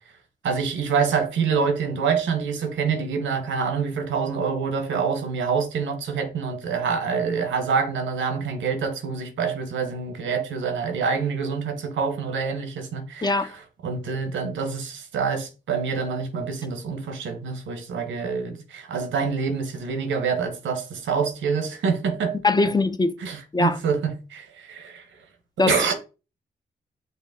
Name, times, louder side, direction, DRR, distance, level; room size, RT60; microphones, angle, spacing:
voice 1, 0.4-22.4 23.2-25.0 25.7-25.9, right 5 dB, 85° right, 1.0 m, -26 dB
voice 2, 22.4-23.1 23.5-23.8 25.6-25.9, left 3 dB, 20° left, 0.5 m, -21 dB
5.5 x 2.1 x 3.5 m
supercardioid pair, 50°, 19 cm